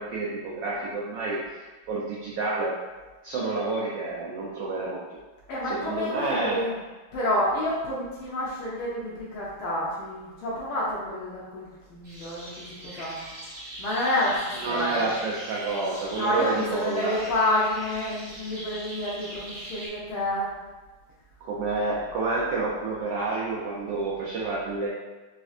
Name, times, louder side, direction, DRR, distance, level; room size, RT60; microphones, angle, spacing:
voice 1, 0.0-2.8 3.2-5.0 5.6-6.6 14.6-17.2 21.4-24.9, right 3 dB, 75° right, -5 dB, 1.1 m, -29 dB
voice 2, 5.5-6.8 7.1-13.2 13.8-15.1 16.1-20.5, left 1 dB, 80° left, -7 dB, 1.5 m, -29 dB
sound 1, 12.0-19.9, right 1 dB, 35° right, 1.0 m, -40 dB
4.2 x 2.5 x 2.4 m, 1.2 s
omnidirectional pair, 2.3 m